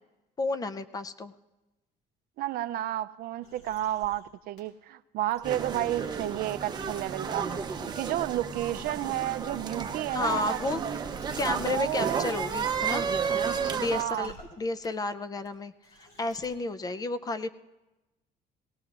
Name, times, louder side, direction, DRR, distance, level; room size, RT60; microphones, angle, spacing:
voice 1, 0.4-1.3 10.1-10.8 11.4-13.0 13.7-15.7 16.2-17.5, left 2 dB, 20° left, 13 dB, 0.4 m, -31 dB
voice 2, 2.4-10.8 11.6-12.4 13.9-14.3, right 14 dB, 60° right, 13 dB, 0.4 m, -32 dB
sound 1, 3.4-4.2 4.6-4.7 5.2-7.1 7.5-7.6 8.2-8.3 8.7-14.5 14.8-14.9 15.4-15.5 15.8-16.6, left 1 dB, 70° left, 4.1 m, -54 dB
sound 2, 5.4-14.0, right 6 dB, 25° right, 0.7 m, -32 dB
19.0 x 17.5 x 2.4 m, 1.0 s
cardioid pair, 145°, 17 cm